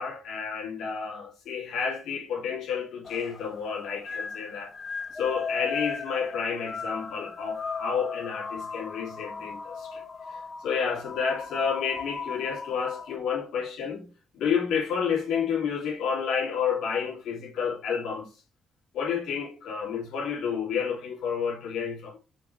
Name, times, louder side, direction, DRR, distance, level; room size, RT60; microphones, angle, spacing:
voice 1, 0.0-4.7 5.1-10.0 10.3-18.3 18.9-22.2, left 6 dB, 80° left, 2.9 m, -30 dB
sound 1, 3.0-13.2, left 5 dB, 35° left, 0.8 m, -37 dB
6.2 x 4.9 x 3.3 m
cardioid pair, 90°, 0 cm